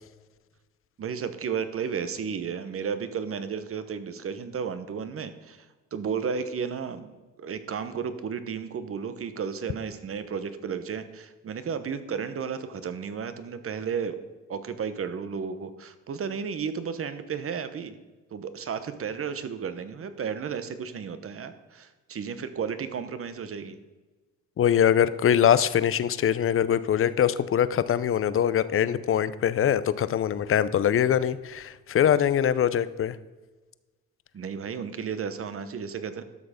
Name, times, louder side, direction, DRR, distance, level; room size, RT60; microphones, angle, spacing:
voice 1, 1.0-5.7 5.9-14.2 14.5-17.9 18.3-23.8 34.3-36.2, right 6 dB, 45° right, 11 dB, 1.0 m, -33 dB
voice 2, 24.6-33.2, left 9 dB, 45° left, 16 dB, 0.6 m, -23 dB
12.0 x 6.6 x 5.1 m, 1.2 s
cardioid pair, 90°, 30 cm